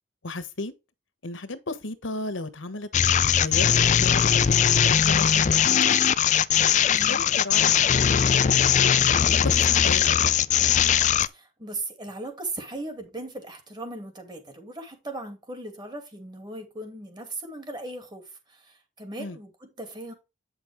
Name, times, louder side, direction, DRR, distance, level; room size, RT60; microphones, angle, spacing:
voice 1, 0.2-0.7 1.2-2.9 3.4-3.7 4.0-5.9 7.1-10.3 19.2-19.4, left 2 dB, 85° left, 1.3 m, -35 dB
sound 1, 2.9-11.3, left 8 dB, 40° left, 0.4 m, -20 dB
voice 2, 6.9-7.3 11.3-18.2 18.5-20.1, right 2 dB, 25° right, 2.6 m, -38 dB
9.1 x 6.1 x 3.6 m
head